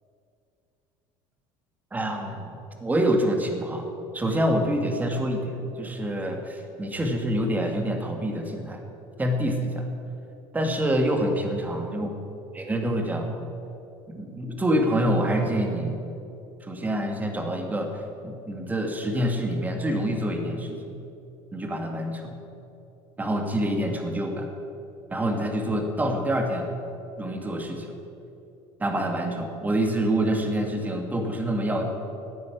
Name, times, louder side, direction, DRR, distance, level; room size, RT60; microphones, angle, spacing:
voice 1, 1.9-3.9 4.1-8.8 9.2-9.9 10.5-12.1 12.5-13.3 14.1-16.0 16.6-21.0 21.5-22.4 23.2-24.5 25.1-26.7 27.2-27.9 28.8-31.9, right 1 dB, 15° right, 3 dB, 2.0 m, -26 dB
16.0 x 9.5 x 8.5 m, 2.8 s
cardioid pair, 135°, 12 cm